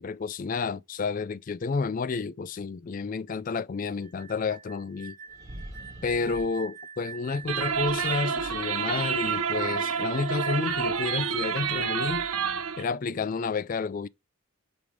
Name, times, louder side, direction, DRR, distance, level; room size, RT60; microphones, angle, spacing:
voice 1, 0.0-5.2 6.0-12.3 12.8-14.1, left 4 dB, 40° left, 0.3 m, -30 dB
sound 1, 4.0-12.2, right 6 dB, 35° right, 1.3 m, -47 dB
sound 2, 5.3-6.5 7.4-10.0, right 1 dB, 15° right, 3.2 m, -46 dB
sound 3, 7.5-12.8, right 6 dB, 90° right, 0.9 m, -29 dB
6.0 x 5.3 x 4.8 m
head